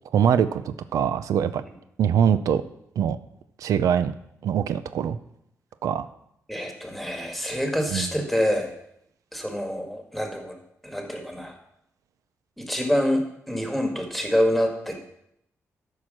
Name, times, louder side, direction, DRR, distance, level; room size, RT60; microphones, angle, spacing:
voice 1, 0.1-1.6 2.0-2.6 3.0-3.2 3.6-4.1 4.4-5.2 5.8-6.1 6.6-6.7 7.9-8.1, right 8 dB, 90° right, 13 dB, 0.5 m, -23 dB
voice 2, 6.5-8.7 9.3-10.5 10.8-11.6 12.6-15.0, equal, ahead, 4 dB, 1.6 m, -26 dB
13.0 x 4.7 x 6.2 m, 0.77 s
wide cardioid pair, 120°, 6 cm